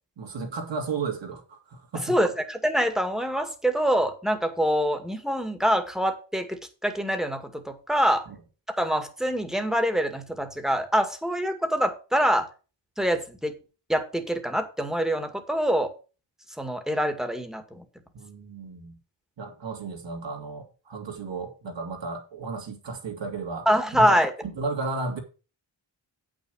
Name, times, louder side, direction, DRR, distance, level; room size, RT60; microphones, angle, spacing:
voice 1, 0.2-2.2 18.1-18.9 19.4-23.7 24.0-25.2, right 4 dB, 70° right, 2.7 m, -34 dB
voice 2, 2.1-8.3 8.8-12.5 13.0-13.6 13.9-15.9 16.6-17.8 23.7-24.3, equal, ahead, 2.0 m, -25 dB
8.6 x 6.2 x 6.4 m
cardioid pair, 80°, 45 cm